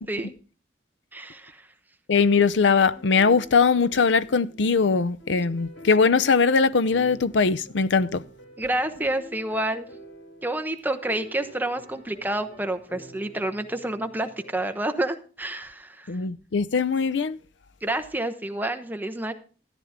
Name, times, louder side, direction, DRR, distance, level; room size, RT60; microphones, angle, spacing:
voice 1, 1.1-1.7 8.6-9.9 10.4-16.1 17.8-19.3, right 1 dB, 10° right, 1.0 m, -29 dB
voice 2, 2.1-8.2 16.1-17.4, left 5 dB, 90° left, 0.6 m, -21 dB
sound 1, 2.8-14.8, equal, 70° left, 2.4 m, -47 dB
13.5 x 11.0 x 3.6 m
head